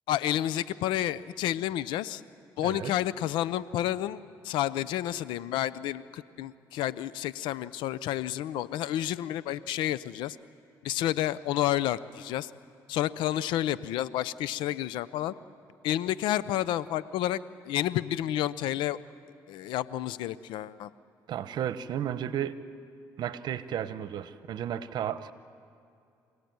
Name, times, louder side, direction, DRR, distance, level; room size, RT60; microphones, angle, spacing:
voice 1, 0.1-2.2 2.6-10.4 10.8-12.5 12.9-15.3 15.8-17.4 17.6-19.0 19.5-20.9, left 13 dB, 85° left, 17 dB, 0.7 m, -30 dB
voice 2, 2.6-2.9 21.3-22.6 23.2-25.3, right 10 dB, 65° right, 13 dB, 1.1 m, -33 dB
26.5 x 17.0 x 9.5 m, 2.6 s
cardioid pair, 85°, 8 cm